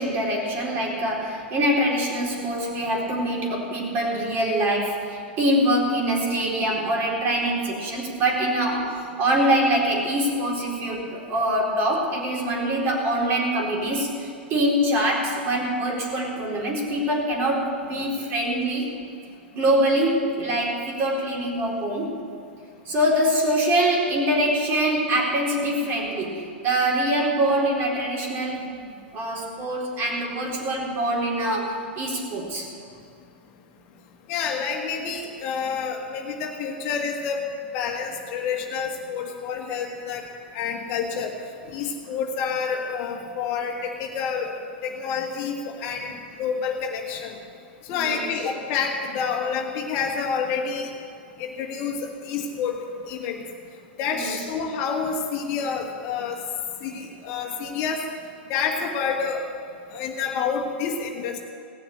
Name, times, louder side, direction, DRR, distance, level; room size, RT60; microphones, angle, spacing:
voice 1, 0.0-18.9 19.5-22.1 22.9-28.8 29.1-32.7 47.9-48.3 54.1-54.4, right 1 dB, 40° right, -2 dB, 4.1 m, -24 dB
voice 2, 34.3-37.4 37.7-40.2 40.5-41.3 41.7-44.5 44.8-46.1 46.4-47.4 47.9-50.9 51.4-52.8 53.1-53.4 54.0-56.4 56.8-58.1 58.5-59.4 59.9-61.4, left 6 dB, 45° left, 1 dB, 1.8 m, -28 dB
17.5 x 7.0 x 8.2 m, 2.5 s
hypercardioid pair, 110°, 6 cm